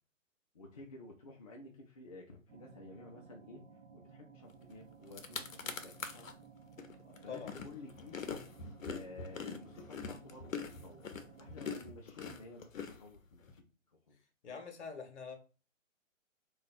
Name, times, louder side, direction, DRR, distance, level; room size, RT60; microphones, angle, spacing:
voice 1, 0.5-3.6 3.9-6.3 7.2-8.2 8.8-11.0 11.3-14.2, left 2 dB, 30° left, 0.4 m, -52 dB
sound 1, 2.5-11.6, right 6 dB, 60° right, 0.8 m, -57 dB
sound 2, 4.7-4.8 5.0-6.3 6.8-13.5, left 5 dB, 75° left, 0.7 m, -43 dB
voice 2, 7.0-7.5 14.4-15.4, left 5 dB, 55° left, 0.9 m, -45 dB
2.5 x 2.3 x 4.0 m
figure-of-eight pair, 130°, 40 cm